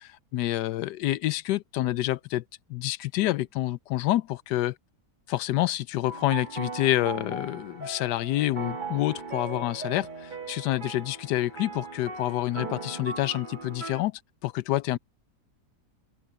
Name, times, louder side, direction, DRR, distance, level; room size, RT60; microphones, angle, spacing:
voice 1, 0.0-2.4 2.7-4.7 5.3-14.1 14.4-15.0, left 15 dB, 90° left, 1.2 m, -28 dB
sound 1, 6.1-14.0, right 4 dB, 30° right, 1.9 m, -38 dB
open air
omnidirectional pair, 1.7 m